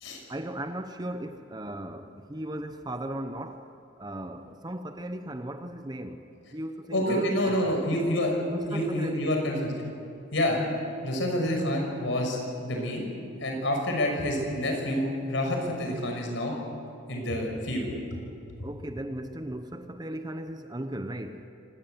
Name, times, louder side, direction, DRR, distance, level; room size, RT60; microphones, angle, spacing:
voice 1, 0.3-6.3 6.5-7.8 8.5-9.3 18.6-21.5, right 1 dB, 20° right, 8 dB, 0.9 m, -37 dB
voice 2, 6.9-8.3 8.7-9.7 10.3-10.6 11.0-13.1 13.4-16.5 17.1-18.2, left 1 dB, 60° left, 2 dB, 5.9 m, -28 dB
25.0 x 19.0 x 8.1 m, 2.5 s
head